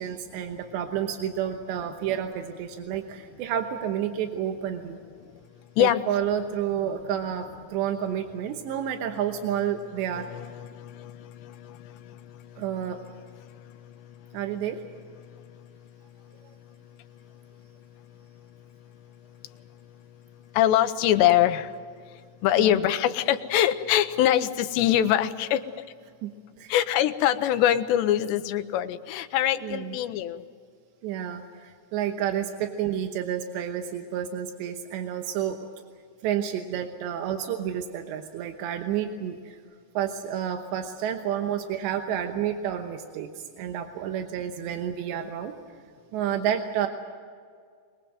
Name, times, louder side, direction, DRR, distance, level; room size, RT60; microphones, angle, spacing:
voice 1, 0.0-5.0 5.8-10.3 12.6-13.0 14.3-14.8 22.5-22.8 26.2-26.3 26.6-26.7 29.6-30.0 31.0-35.6 36.2-39.6 39.9-45.5 46.1-46.9, right 9 dB, 90° right, 5 dB, 3.3 m, -30 dB
voice 2, 10.1-11.9 20.5-21.7 22.4-25.6 26.7-30.4, left 11 dB, 85° left, 9 dB, 3.1 m, -23 dB
23.0 x 21.5 x 7.7 m, 2.1 s
omnidirectional pair, 4.9 m